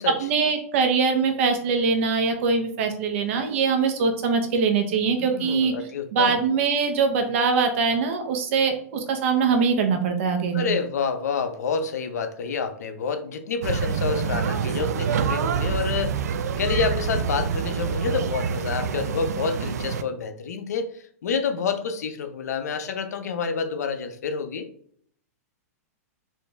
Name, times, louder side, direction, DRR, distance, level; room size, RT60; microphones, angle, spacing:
voice 1, 0.2-5.7 6.1-10.7, right 5 dB, 50° right, 5 dB, 0.9 m, -22 dB
voice 2, 5.2-6.4 10.5-24.7, left 5 dB, 85° left, 8 dB, 0.6 m, -28 dB
sound 1, 13.6-20.0, right 7 dB, 85° right, 0.4 m, -26 dB
4.5 x 2.6 x 3.2 m, 0.62 s
hypercardioid pair, 155°, 8 cm